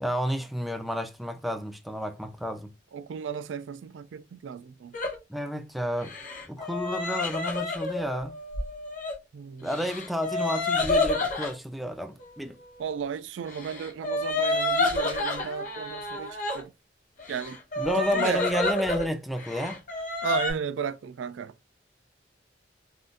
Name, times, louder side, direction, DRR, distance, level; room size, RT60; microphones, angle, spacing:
voice 1, 0.0-2.7 5.3-6.1 6.5-8.3 9.6-12.6 17.8-19.8, equal, ahead, 0.3 m, -31 dB
voice 2, 2.9-5.0 9.3-9.7 12.8-16.7 17.3-17.6 18.0-18.5 20.2-21.5, right 7 dB, 90° right, 0.3 m, -34 dB
sound 1, 4.9-5.1 6.0-9.1 9.7-11.5 13.5-16.6 17.2-19.1 19.4-20.5, left 2 dB, 45° left, 0.8 m, -29 dB
3.6 x 2.5 x 2.4 m
head